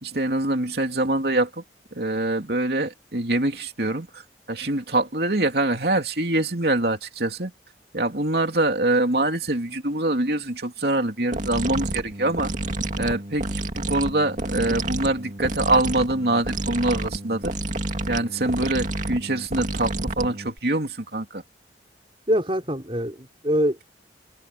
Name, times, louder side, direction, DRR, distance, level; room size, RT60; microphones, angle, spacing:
voice 1, 0.0-1.6 1.9-4.2 4.5-7.5 7.9-12.5 13.0-17.5 18.1-21.4, right 2 dB, 60° right, 3.0 m, -24 dB
sound 1, 11.3-20.6, right 2 dB, 45° right, 2.3 m, -29 dB
voice 2, 22.3-23.8, equal, 30° right, 5.0 m, -24 dB
head